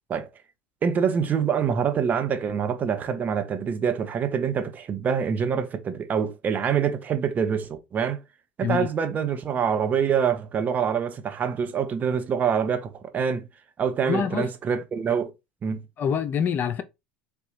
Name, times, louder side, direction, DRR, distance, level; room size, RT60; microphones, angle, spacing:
voice 1, 0.8-8.2 8.6-13.5 13.8-15.3 15.6-15.8, right 7 dB, 35° right, 0.8 m, -25 dB
voice 2, 14.1-14.5 16.0-16.8, left 7 dB, 40° left, 0.5 m, -25 dB
4.1 x 2.3 x 3.8 m
hypercardioid pair, 85°, 5 cm